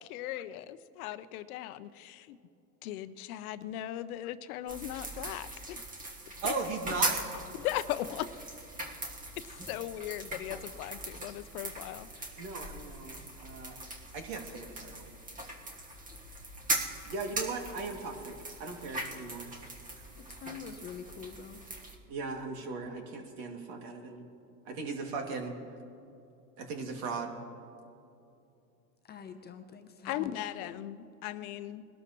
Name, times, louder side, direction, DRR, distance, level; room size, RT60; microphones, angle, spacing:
voice 1, 0.0-2.4 2.8-5.8 6.4-6.5 7.6-8.3 9.4-12.3 30.0-31.9, left 13 dB, 70° left, 13 dB, 0.8 m, -38 dB
sound 1, 4.7-22.0, right 2 dB, 15° right, 1.5 m, -40 dB
voice 2, 6.4-7.2 12.4-13.8 14.1-15.1 17.0-19.5 22.1-24.3 24.7-25.5 26.6-27.4, right 4 dB, 60° right, 2 dB, 2.5 m, -38 dB
voice 3, 20.2-21.6 29.0-30.8 31.3-31.5, left 6 dB, 20° left, 5 dB, 0.7 m, -46 dB
22.0 x 12.5 x 3.1 m, 2.7 s
supercardioid pair, 120°, 46 cm